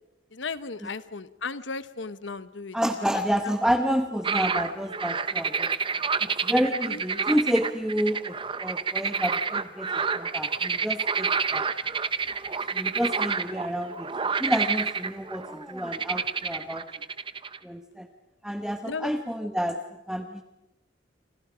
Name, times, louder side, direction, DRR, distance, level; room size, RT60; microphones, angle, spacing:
voice 1, 0.3-2.8 3.1-3.2 6.8-7.0 18.8-19.1, left 4 dB, 75° left, 14 dB, 1.1 m, -35 dB
voice 2, 2.7-5.7 6.2-11.6 12.7-14.1 14.4-16.9 17.6-18.1 18.4-19.8 20.1-20.4, equal, 5° right, 6 dB, 1.0 m, -29 dB
sound 1, 4.2-17.6, right 5 dB, 30° right, 0.8 m, -29 dB
28.5 x 26.5 x 5.1 m, 0.99 s
head